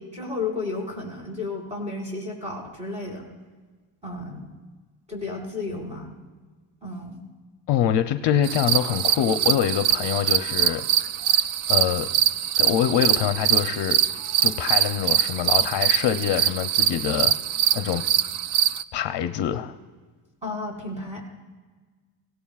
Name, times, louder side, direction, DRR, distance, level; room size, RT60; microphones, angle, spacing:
voice 1, 0.0-3.3 4.0-4.4 5.1-6.1 6.8-7.2 20.4-21.2, left 3 dB, 15° right, -4 dB, 4.8 m, -32 dB
voice 2, 7.7-10.9 11.7-12.1 12.6-14.0 14.4-17.3 17.7-18.0 18.9-19.8, left 10 dB, 60° left, 8 dB, 0.7 m, -24 dB
sound 1, 8.4-18.8, right 11 dB, 80° right, 0.6 m, -23 dB
25.5 x 17.0 x 2.4 m, 1.4 s
cardioid pair, 140°, 47 cm